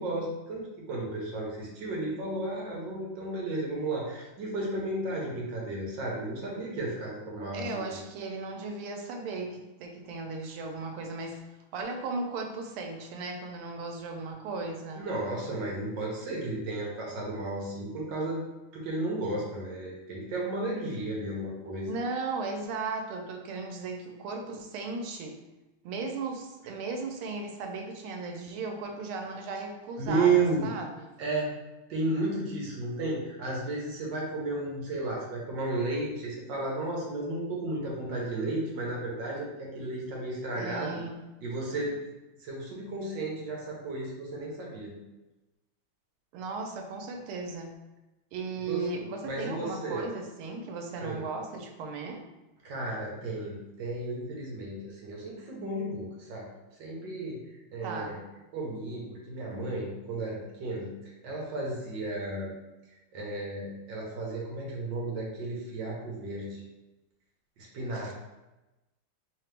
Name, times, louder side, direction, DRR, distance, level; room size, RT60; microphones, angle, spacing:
voice 1, 0.0-8.0 15.0-18.4 18.7-21.9 29.9-30.7 31.2-31.5 31.9-41.0 41.4-42.0 42.4-44.9 48.6-48.8 49.2-50.0 51.0-51.2 52.6-56.5 56.8-57.4 57.7-58.2 58.5-60.9 61.2-62.5 63.1-66.6 67.7-68.1, right 2 dB, 65° right, -3 dB, 1.4 m, -33 dB
voice 2, 7.5-11.4 11.7-15.1 21.9-25.3 25.8-31.1 40.6-41.2 46.3-47.7 48.3-52.2 57.8-58.2 67.9-68.1, right 3 dB, 85° right, 3 dB, 1.5 m, -36 dB
3.7 x 2.8 x 3.2 m, 1.0 s
omnidirectional pair, 2.3 m